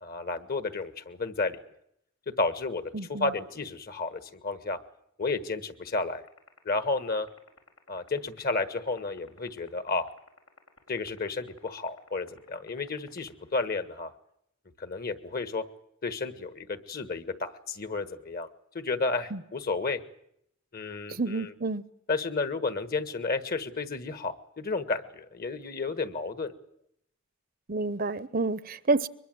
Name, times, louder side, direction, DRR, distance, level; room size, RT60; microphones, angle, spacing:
voice 1, 0.0-1.6 2.3-2.8 3.2-4.8 5.2-6.2 6.6-7.3 7.9-10.1 10.9-14.1 14.8-15.6 16.0-18.5 18.7-20.0 20.7-21.5 22.1-26.5, left 3 dB, 45° left, 11 dB, 1.5 m, -32 dB
voice 2, 2.9-3.3 19.3-19.4 21.1-21.8 27.7-29.1, right 3 dB, 45° right, 16 dB, 0.8 m, -29 dB
sound 1, 6.3-13.8, left 4 dB, 90° left, 5.7 m, -53 dB
23.0 x 21.5 x 7.8 m, 0.74 s
head